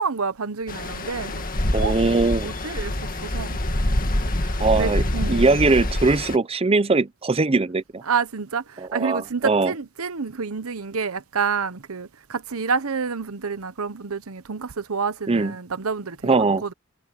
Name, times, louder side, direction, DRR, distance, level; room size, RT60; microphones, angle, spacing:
voice 1, 0.0-1.4 1.8-1.9 2.4-2.9 3.2-3.6 4.4-5.6 8.1-16.7, right 5 dB, 80° right, 0.9 m, -28 dB
Stream, 0.7-6.4, left 1 dB, 40° left, 2.0 m, -25 dB
voice 2, 1.7-2.5 4.6-8.0 8.8-9.7 15.3-15.5 16.2-16.6, right 3 dB, 25° right, 0.6 m, -21 dB
head